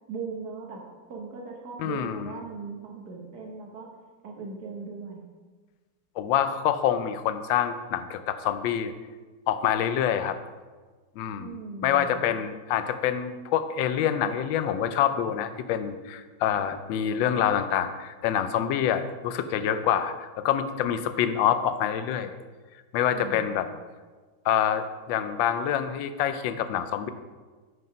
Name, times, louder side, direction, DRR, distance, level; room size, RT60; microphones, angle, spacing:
voice 1, 0.1-0.8 1.1-3.9 4.2-5.2 11.4-12.1 23.1-23.7, right 4 dB, 60° right, 0 dB, 1.6 m, -38 dB
voice 2, 1.8-2.4 6.2-8.9 9.5-10.4 11.2-11.6 11.8-22.3 22.9-23.7 24.4-27.1, left 9 dB, 85° left, 10 dB, 1.3 m, -26 dB
5.9 x 5.5 x 5.2 m, 1.4 s
omnidirectional pair, 2.0 m